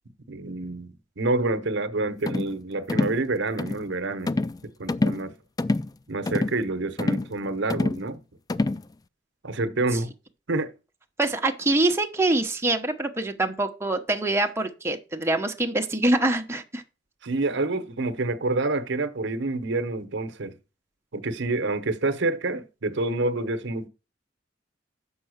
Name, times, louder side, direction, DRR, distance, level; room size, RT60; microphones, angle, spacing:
voice 1, 0.3-4.4 4.8-5.3 6.1-8.2 9.4-10.1 10.5-10.7 17.2-20.6 21.1-23.9, right 2 dB, 65° right, 0.9 m, -27 dB
sound 1, 2.3-2.5 2.9-3.2 3.6-3.8 4.3-4.6 4.9-5.2 5.6-5.9 6.3-6.6 7.0-7.3 7.7-8.0 8.5-8.8, left 2 dB, 20° left, 0.3 m, -26 dB
voice 2, 11.2-16.8, right 2 dB, 15° right, 1.0 m, -25 dB
6.9 x 5.6 x 6.4 m
head